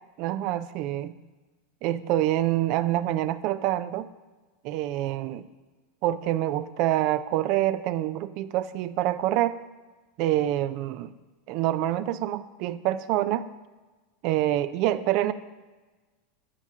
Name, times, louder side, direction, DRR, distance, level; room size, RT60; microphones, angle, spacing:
voice 1, 0.2-1.2 1.8-4.1 4.6-5.5 6.0-9.6 10.2-11.1 11.5-13.5 14.2-15.3, right 13 dB, 55° right, 13 dB, 0.5 m, -26 dB
9.8 x 8.1 x 3.6 m, 1.2 s
hypercardioid pair, 100°, 0 cm